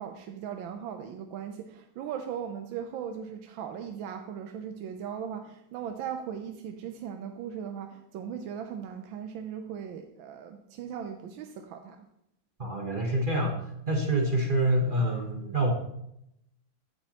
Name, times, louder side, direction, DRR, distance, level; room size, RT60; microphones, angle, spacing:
voice 1, 0.0-12.0, right 8 dB, 85° right, 5 dB, 1.4 m, -38 dB
voice 2, 12.6-13.6 13.9-15.7, right 1 dB, 35° right, 1 dB, 0.8 m, -26 dB
14.5 x 5.4 x 2.9 m, 0.79 s
omnidirectional pair, 2.1 m